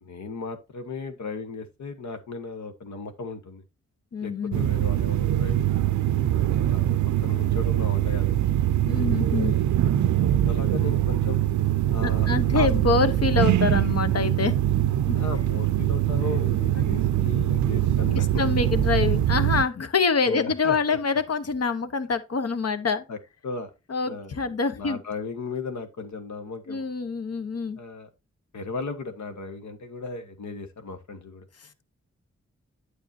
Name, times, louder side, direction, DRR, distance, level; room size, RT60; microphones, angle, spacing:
voice 1, 0.0-3.6 4.2-7.0 7.2-8.3 10.4-11.4 11.9-12.3 12.5-12.7 15.1-18.4 20.2-21.0 23.1-23.2 23.4-23.7 24.0-26.9 27.7-28.1 28.5-31.4, left 4 dB, 75° left, 1.3 m, -36 dB
voice 2, 4.1-4.7 8.8-9.5 12.3-14.5 15.1-15.2 16.8-16.9 18.1-23.0 23.9-25.0 26.7-27.8, left 5 dB, 55° left, 1.0 m, -25 dB
sound 1, 4.5-19.6, right 12 dB, 80° right, 0.5 m, -23 dB
9.1 x 6.6 x 2.7 m
cardioid pair, 45°, 29 cm